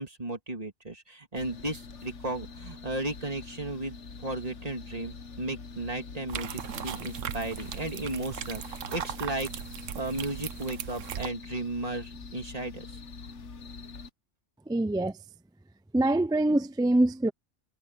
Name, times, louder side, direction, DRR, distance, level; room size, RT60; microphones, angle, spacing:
voice 1, 0.0-9.5 10.0-13.0, right 2 dB, 30° right, 2.6 m, -35 dB
sound 1, 1.4-14.1, left 4 dB, 70° left, 1.5 m, -44 dB
sound 2, 6.3-11.3, right 9 dB, 80° right, 1.2 m, -38 dB
voice 2, 14.7-15.1 15.9-17.3, right 1 dB, 5° right, 0.3 m, -24 dB
omnidirectional pair, 1.3 m